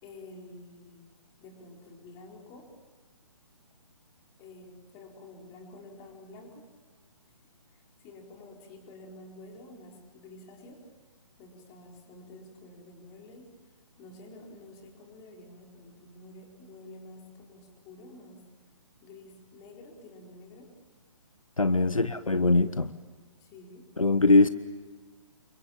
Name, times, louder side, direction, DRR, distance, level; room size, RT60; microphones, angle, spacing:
voice 1, 0.0-1.1 1.4-2.7 4.4-6.7 7.2-7.3 7.7-10.8 11.4-13.5 14.0-18.4 19.0-20.7 21.7-22.1 23.4-23.9, left 2 dB, 20° left, 1 dB, 4.5 m, -49 dB
voice 2, 21.6-22.9 24.0-24.5, left 2 dB, 80° left, 13 dB, 1.1 m, -22 dB
28.5 x 24.5 x 7.3 m, 1.4 s
figure-of-eight pair, 135°, 17 cm